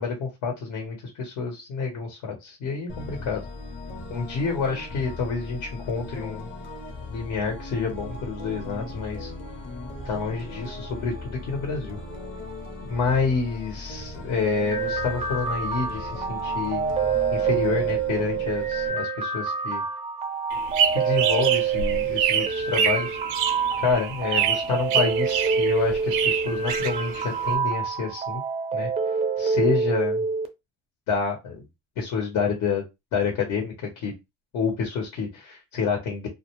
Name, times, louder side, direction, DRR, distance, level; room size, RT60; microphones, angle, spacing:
voice 1, 0.0-3.4 4.1-6.5 7.1-9.3 10.0-12.0 12.8-16.8 17.3-19.8 20.9-23.2 23.8-28.4 28.7-28.9 29.4-30.2 31.1-31.6 32.0-32.8 33.1-34.1 34.5-36.3, left 5 dB, 80° left, 1 dB, 1.1 m, -28 dB
sound 1, 2.9-18.9, left 2 dB, 40° left, 0.8 m, -38 dB
sound 2, 14.5-30.5, right 5 dB, 20° right, 0.4 m, -27 dB
sound 3, 20.5-27.5, right 7 dB, 90° right, 0.5 m, -26 dB
2.2 x 2.2 x 3.0 m, 0.22 s
cardioid pair, 120°, 30 cm